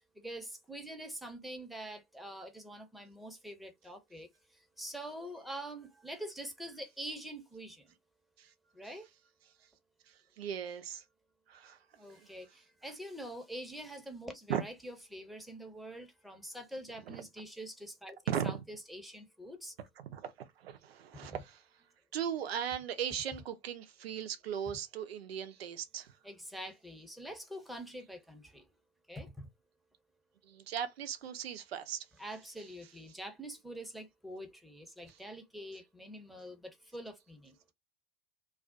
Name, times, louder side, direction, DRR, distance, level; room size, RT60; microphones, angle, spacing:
voice 1, 0.2-4.3 4.8-7.8 8.7-9.1 11.9-18.2 18.4-19.7 21.1-21.3 26.2-28.6 29.1-29.5 32.2-37.5, right 1 dB, ahead, 0.8 m, -45 dB
voice 2, 10.1-11.0 11.5-11.8 12.2-12.3 14.5-14.6 17.1-17.2 18.3-18.6 20.1-20.3 20.6-21.6 22.1-26.1 30.4-32.1 35.1-35.2, right 9 dB, 80° right, 0.6 m, -38 dB
2.4 x 2.3 x 2.4 m
figure-of-eight pair, 70°, 30 cm